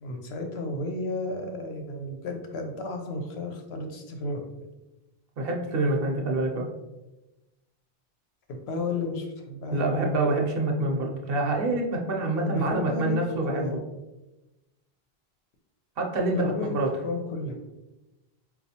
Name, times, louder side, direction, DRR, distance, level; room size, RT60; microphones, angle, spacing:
voice 1, 0.0-4.4 8.5-9.8 12.4-13.8 16.3-16.8 17.0-17.6, left 2 dB, 85° left, 3 dB, 0.9 m, -33 dB
voice 2, 5.4-6.7 9.7-13.8 16.0-16.9, right 2 dB, 65° right, 1 dB, 0.8 m, -26 dB
4.2 x 2.3 x 2.8 m, 1.0 s
omnidirectional pair, 1.1 m